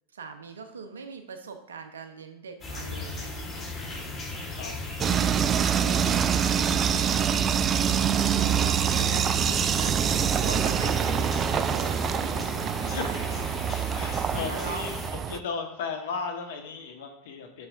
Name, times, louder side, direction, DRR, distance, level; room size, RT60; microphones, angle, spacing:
voice 1, 0.1-3.3 5.0-7.7 8.3-10.0 10.4-13.5 14.3-14.8, right 5 dB, 85° right, 7 dB, 0.8 m, -42 dB
sound 1, 2.6-15.1, left 2 dB, 30° left, 3.1 m, -37 dB
voice 2, 3.9-4.2 4.5-4.7 10.4-10.8 12.9-13.1 13.9-14.9 15.3-17.7, left 5 dB, 70° left, 4 dB, 1.3 m, -36 dB
sound 2, 5.0-15.4, right 8 dB, 35° right, 0.4 m, -25 dB
9.4 x 6.7 x 2.6 m, 0.84 s
hypercardioid pair, 85°, 0 cm